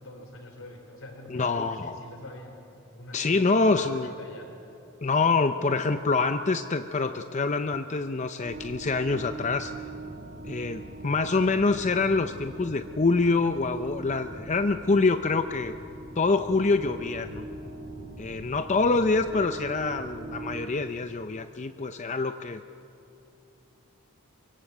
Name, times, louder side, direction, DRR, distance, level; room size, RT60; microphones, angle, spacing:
voice 1, 0.0-2.6 2.9-4.5, left 1 dB, 65° left, 4 dB, 4.4 m, -45 dB
voice 2, 1.3-2.0 3.1-4.2 5.0-9.7 10.4-15.7 16.2-17.5 18.2-22.6, left 3 dB, 35° left, 9 dB, 0.6 m, -26 dB
sound 1, 8.4-20.7, right 2 dB, 35° right, 2.7 m, -42 dB
24.5 x 23.0 x 8.0 m, 2.9 s
head